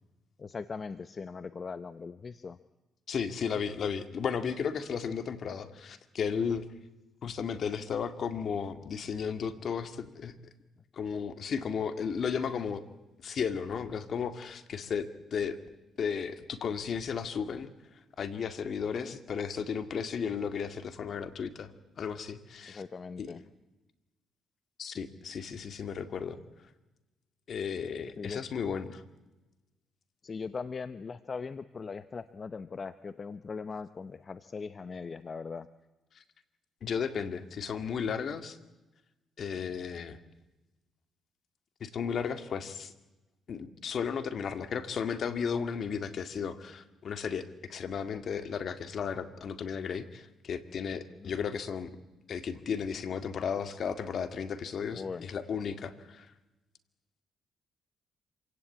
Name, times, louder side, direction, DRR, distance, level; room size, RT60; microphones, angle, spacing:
voice 1, 0.4-2.6 7.2-7.3 19.0-19.2 22.7-23.4 28.2-28.4 30.2-35.7 51.2-51.4 54.9-55.3, left 5 dB, 40° left, 13 dB, 0.8 m, -40 dB
voice 2, 3.1-6.7 7.2-10.4 10.9-12.8 13.2-15.6 16.0-17.7 18.2-21.7 22.0-22.8 23.2-23.3 24.8-26.4 27.5-29.0 36.2-36.3 36.8-38.6 39.4-40.2 41.8-42.9 43.5-51.9 52.3-56.3, left 6 dB, 55° left, 10 dB, 2.0 m, -34 dB
26.5 x 17.5 x 8.6 m, 1.1 s
cardioid pair, 90°, 0 cm